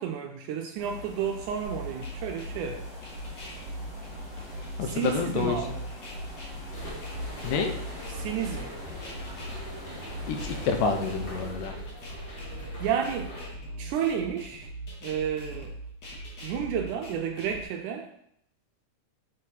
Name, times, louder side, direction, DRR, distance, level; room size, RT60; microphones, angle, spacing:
voice 1, 0.0-2.9 4.8-5.9 8.1-8.7 12.8-13.4 13.8-14.7 15.0-15.7 16.4-18.1, right 8 dB, 80° right, 4 dB, 1.9 m, -31 dB
sound 1, 0.8-11.5, left 2 dB, 15° left, 2.2 m, -43 dB
sound 2, 1.6-17.6, right 1 dB, 65° left, 1.0 m, -41 dB
voice 2, 4.8-5.6 7.4-7.7 10.3-11.8, left 5 dB, 80° left, 5 dB, 2.1 m, -28 dB
sound 3, 6.7-13.5, equal, 40° left, 0.7 m, -42 dB
6.6 x 4.3 x 4.1 m, 0.72 s
omnidirectional pair, 3.9 m